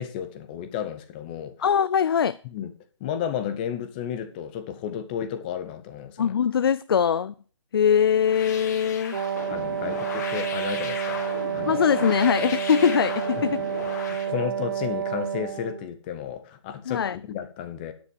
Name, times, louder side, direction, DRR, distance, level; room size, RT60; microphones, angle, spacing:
voice 1, 0.0-1.5 2.4-2.7 3.0-6.3 9.5-11.2 11.5-11.9 13.4-13.5 13.9-17.9, left 9 dB, 20° left, 0.8 m, -33 dB
voice 2, 1.6-2.4 6.2-7.3 7.7-9.2 9.9-10.0 11.7-13.6 16.9-17.2, left 7 dB, 50° left, 0.4 m, -22 dB
sound 1, 8.2-14.3, left 6 dB, 35° left, 2.1 m, -36 dB
Wind instrument woodwind instrument, 9.1-15.9, right 9 dB, 45° right, 0.8 m, -29 dB
9.9 x 8.4 x 5.3 m
hypercardioid pair, 160°, 16 cm